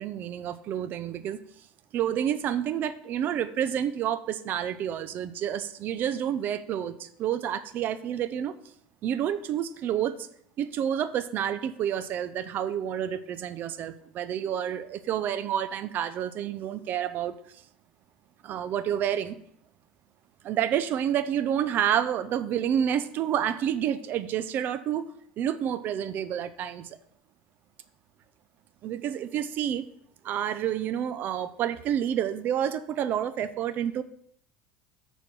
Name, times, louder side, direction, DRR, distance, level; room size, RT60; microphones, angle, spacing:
voice 1, 0.0-1.4 1.9-8.6 9.0-10.2 10.6-17.3 18.4-19.4 20.4-25.1 25.4-27.0 28.8-29.9 30.2-34.0, right 9 dB, 50° right, 14 dB, 0.6 m, -29 dB
6.7 x 4.5 x 6.4 m, 0.67 s
hypercardioid pair, 90°, 4 cm